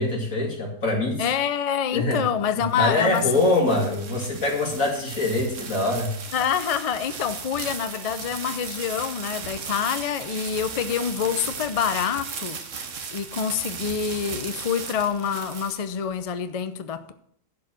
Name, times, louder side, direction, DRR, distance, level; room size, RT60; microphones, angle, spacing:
voice 1, 0.0-1.3 1.9-2.2 2.7-6.1, left 2 dB, 90° left, 2.8 m, -24 dB
voice 2, 1.2-3.3 6.3-12.6 13.1-17.1, left 8 dB, 40° left, 0.5 m, -26 dB
sound 1, 2.4-16.2, right 5 dB, 65° right, 1.4 m, -36 dB
11.5 x 4.7 x 7.5 m
omnidirectional pair, 1.4 m